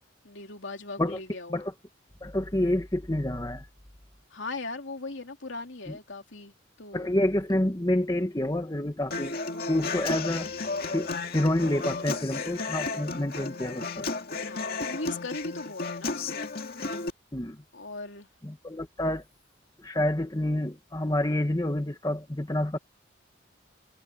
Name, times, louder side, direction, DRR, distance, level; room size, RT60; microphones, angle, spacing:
voice 1, 0.2-1.6 4.3-7.1 10.9-11.0 14.4-16.5 17.7-18.3, left 3 dB, 65° left, 3.1 m, -38 dB
voice 2, 2.2-3.6 6.9-9.4 9.7-10.5 10.9-14.1 17.3-17.6 18.4-19.2 19.8-22.8, left 1 dB, 20° left, 1.1 m, -28 dB
Human voice / Acoustic guitar, 9.1-17.1, left 3 dB, 50° left, 2.2 m, -33 dB
head